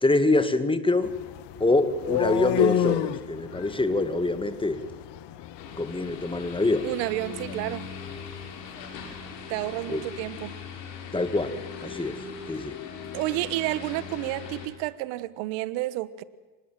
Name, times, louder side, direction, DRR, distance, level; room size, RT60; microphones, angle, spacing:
voice 1, 0.0-1.1 1.6-4.8 5.8-6.9 9.9-10.0 11.1-12.8, left 2 dB, 10° left, 2.2 m, -25 dB
sound 1, 1.0-9.0, left 13 dB, 60° left, 1.6 m, -31 dB
sound 2, 5.6-14.7, left 5 dB, 90° left, 4.6 m, -40 dB
voice 2, 6.8-7.9 9.5-10.6 13.1-16.2, right 17 dB, 70° right, 1.4 m, -30 dB
25.5 x 20.0 x 7.6 m
supercardioid pair, 85°, 48 cm